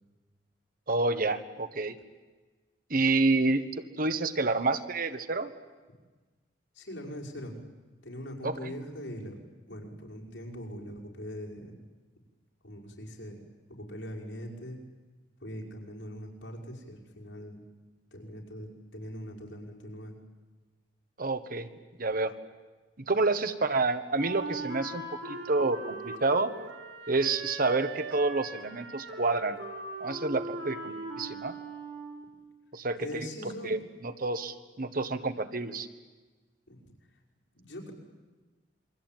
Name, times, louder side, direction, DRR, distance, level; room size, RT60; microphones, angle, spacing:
voice 1, 0.9-1.9 2.9-5.5 8.4-8.7 21.2-21.7 22.0-22.3 23.1-26.5 27.1-29.6 30.0-31.6 32.7-33.3 33.6-35.9, right 3 dB, 50° right, 10 dB, 1.5 m, -29 dB
voice 2, 6.7-7.5 8.0-9.4 9.7-11.7 12.6-13.4 13.7-14.8 15.4-17.6 18.1-20.1 33.0-33.8 36.7-36.9 37.5-37.9, equal, 85° left, -1 dB, 5.8 m, -41 dB
Wind instrument woodwind instrument, 24.2-32.4, right 2 dB, 85° right, 4.0 m, -40 dB
27.5 x 23.0 x 9.3 m, 1.3 s
head